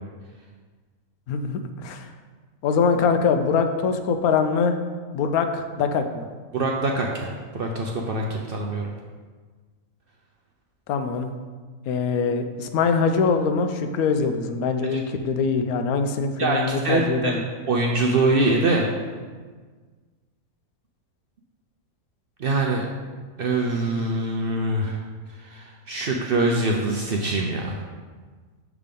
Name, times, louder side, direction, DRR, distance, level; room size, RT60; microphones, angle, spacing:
voice 1, 1.3-2.1 2.6-4.8 5.1-6.2 10.9-11.3 11.9-17.4, left 5 dB, 85° left, 7 dB, 1.1 m, -23 dB
voice 2, 6.5-8.9 14.9-15.0 16.4-17.3 17.7-18.8 22.4-22.8 23.4-25.0 25.4-27.8, right 2 dB, 60° right, 0 dB, 0.6 m, -24 dB
6.8 x 3.6 x 5.2 m, 1.5 s
omnidirectional pair, 1.5 m